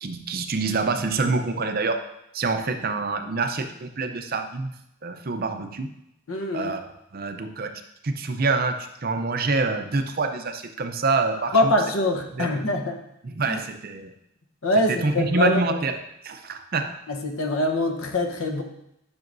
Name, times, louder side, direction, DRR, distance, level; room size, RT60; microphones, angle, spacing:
voice 1, 0.0-2.0 2.3-4.7 5.0-5.9 6.5-7.7 8.0-11.7 12.4-12.7 13.2-14.1 14.9-16.0 16.2-16.9, right 3 dB, 40° right, 6 dB, 0.5 m, -26 dB
voice 2, 6.3-6.7 11.5-13.0 13.5-13.6 14.6-15.8 17.1-18.6, left 1 dB, 65° left, 4 dB, 1.0 m, -24 dB
10.5 x 6.3 x 2.6 m, 0.81 s
head